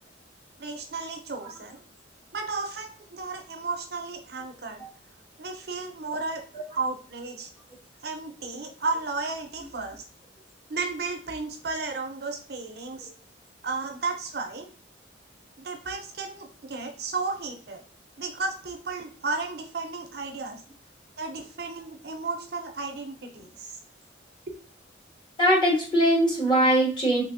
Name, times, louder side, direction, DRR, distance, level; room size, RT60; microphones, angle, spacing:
voice 1, 0.6-1.8 2.3-4.8 5.4-6.4 6.7-7.5 8.0-10.0 10.7-13.1 13.6-14.7 15.6-17.8 18.2-20.6 21.2-23.8, right 3 dB, 55° right, 4 dB, 0.6 m, -33 dB
voice 2, 25.4-27.2, right 1 dB, 25° left, -4 dB, 1.2 m, -21 dB
3.3 x 3.0 x 2.5 m, 0.43 s
head